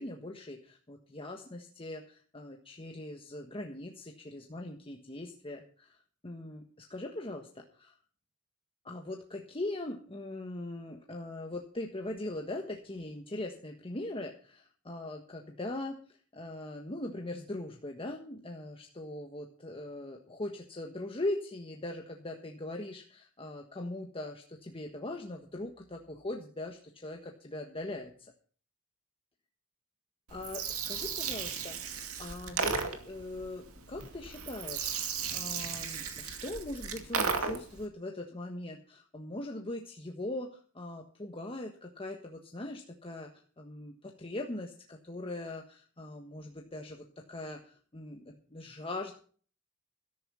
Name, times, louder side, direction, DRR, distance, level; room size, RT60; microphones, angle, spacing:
voice 1, 0.0-7.9 8.8-28.3 30.3-43.3 43.6-49.1, left 1 dB, 25° left, 2 dB, 1.4 m, -41 dB
Gurgling, 30.3-37.8, right 6 dB, 70° right, 2.3 m, -35 dB
13.0 x 11.0 x 5.6 m, 0.43 s
head